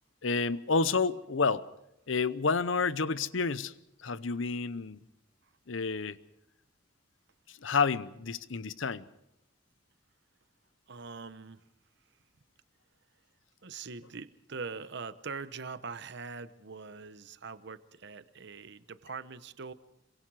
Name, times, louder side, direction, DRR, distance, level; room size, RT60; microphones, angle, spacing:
voice 1, 0.2-1.7 2.1-3.7 4.0-5.0 5.7-6.2 7.6-9.0, left 4 dB, 75° left, 0.8 m, -29 dB
voice 2, 10.9-11.6 13.6-19.7, right 4 dB, 60° right, 0.9 m, -42 dB
26.0 x 23.0 x 4.8 m
head